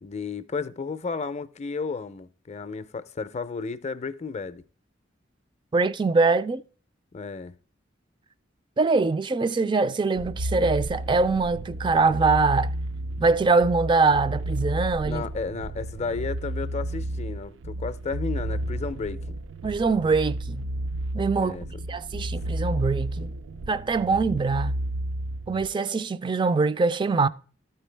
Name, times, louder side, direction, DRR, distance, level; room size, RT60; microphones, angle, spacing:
voice 1, 0.0-4.6 7.1-7.5 15.0-19.4 21.4-21.7, left 4 dB, 35° left, 0.5 m, -33 dB
voice 2, 5.7-6.6 8.8-12.7 13.2-15.3 19.6-20.7 21.1-21.6 21.9-23.3 23.7-24.8 25.5-27.3, right 4 dB, 25° right, 0.3 m, -23 dB
sound 1, 10.2-25.7, right 1 dB, 85° right, 0.5 m, -32 dB
12.5 x 4.5 x 3.2 m
head